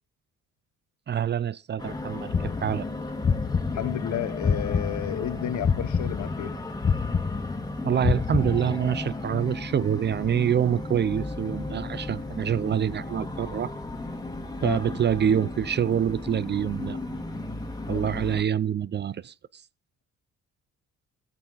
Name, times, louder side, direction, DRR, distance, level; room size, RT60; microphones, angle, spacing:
voice 1, 1.1-2.8 7.8-13.7 14.6-17.0 17.9-19.3, right 9 dB, 35° right, 0.4 m, -26 dB
sound 1, 1.8-18.4, left 2 dB, 15° left, 1.9 m, -35 dB
sound 2, 2.3-5.3 5.6-9.0, left 6 dB, 30° left, 0.8 m, -27 dB
voice 2, 3.7-6.5 14.6-14.8 17.9-18.0, left 11 dB, 75° left, 1.2 m, -31 dB
15.5 x 6.0 x 4.0 m
cardioid pair, 90°, 30 cm